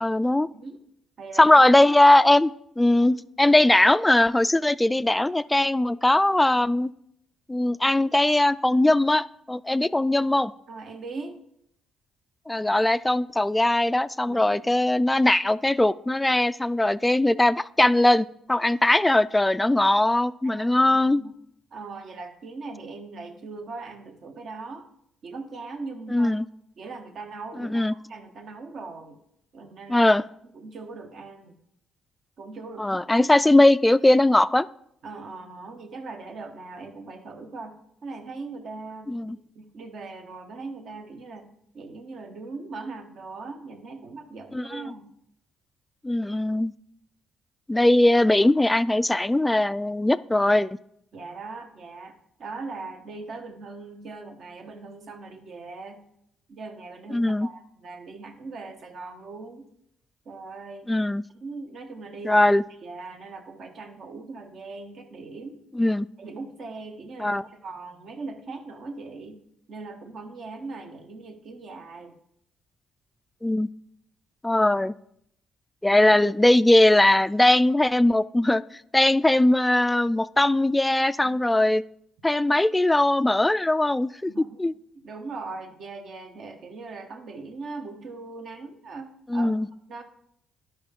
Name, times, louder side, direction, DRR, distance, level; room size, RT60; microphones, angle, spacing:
voice 1, 0.0-0.5 1.4-6.9 7.5-10.5 12.5-21.2 26.1-26.4 27.6-27.9 29.9-30.2 32.8-34.7 39.1-39.4 44.5-44.8 46.0-46.7 47.7-50.7 57.1-57.5 60.9-61.2 62.3-62.6 65.8-66.1 67.2-67.4 73.4-73.7 74.4-74.9 75.8-78.6 78.9-81.8 82.2-84.3 84.6-84.7 89.3-89.7, left 1 dB, 10° left, 16 dB, 0.3 m, -20 dB
voice 2, 1.2-1.5 3.0-3.2 10.7-11.4 14.3-14.8 20.4-21.3 21.7-24.9 25.2-26.3 26.8-29.2 29.5-30.1 30.5-31.6 32.4-33.3 35.0-37.8 38.0-41.5 41.7-45.1 51.1-56.0 56.5-59.7 60.2-60.9 61.4-62.4 62.8-65.6 66.2-69.4 69.7-72.2 81.2-81.4 84.3-84.6 84.9-89.6 89.9-90.0, right 3 dB, 60° right, 5 dB, 1.2 m, -40 dB
11.5 x 5.5 x 3.6 m, 0.73 s
cardioid pair, 80°, 0 cm